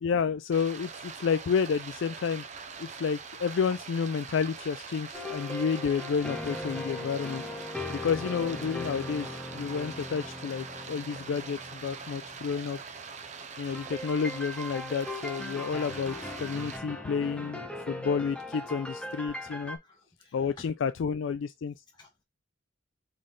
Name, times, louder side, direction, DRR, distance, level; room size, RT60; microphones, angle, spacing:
voice 1, 0.0-2.4 2.8-7.4 7.9-12.8 13.6-19.8 20.3-21.7, left 6 dB, 85° left, 0.3 m, -30 dB
Stream, 0.5-16.8, right 5 dB, 40° right, 0.7 m, -43 dB
sound 1, 5.1-12.9 13.7-19.8, left 1 dB, 5° left, 0.8 m, -39 dB
voice 2, 18.9-19.2 19.8-20.5 21.9-22.2, left 3 dB, 25° left, 1.1 m, -62 dB
4.3 x 3.1 x 3.7 m
head